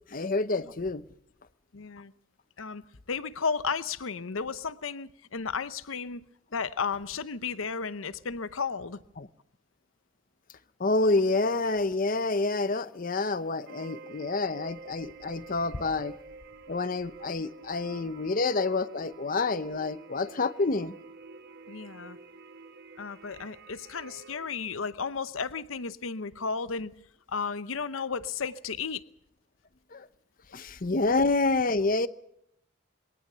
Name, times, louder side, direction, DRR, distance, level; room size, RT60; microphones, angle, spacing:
voice 1, 0.1-1.0 9.2-9.3 10.8-16.2 16.7-20.9 29.9-30.1 30.5-32.1, left 3 dB, 45° left, 0.8 m, -28 dB
voice 2, 1.7-2.1 2.6-2.8 3.1-6.2 6.5-9.0 21.7-22.2 23.0-26.9 27.3-29.0, left 5 dB, 90° left, 0.8 m, -33 dB
sound 1, 13.7-24.5, right 3 dB, 55° right, 1.2 m, -48 dB
23.0 x 18.0 x 6.8 m
head